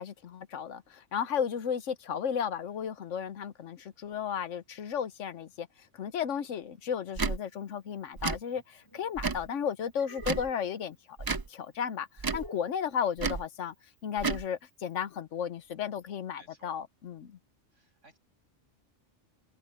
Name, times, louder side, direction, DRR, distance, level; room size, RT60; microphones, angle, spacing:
voice 1, 0.0-5.7 5.9-11.2 11.5-13.7 14.0-17.4, left 8 dB, 80° left, 1.2 m, -34 dB
Tick / Tick-tock, 7.1-7.4 8.2-8.4 9.2-9.5 10.2-10.5 11.2-11.5 12.2-12.5 13.2-13.4 14.2-14.4, right 4 dB, 35° right, 0.3 m, -31 dB
sound 1, 8.4-9.2 9.9-10.8 12.3-12.8, left 1 dB, 15° left, 2.7 m, -50 dB
voice 2, 16.4-16.9 17.7-18.2, right 2 dB, 85° right, 7.6 m, -58 dB
omnidirectional pair, 1.3 m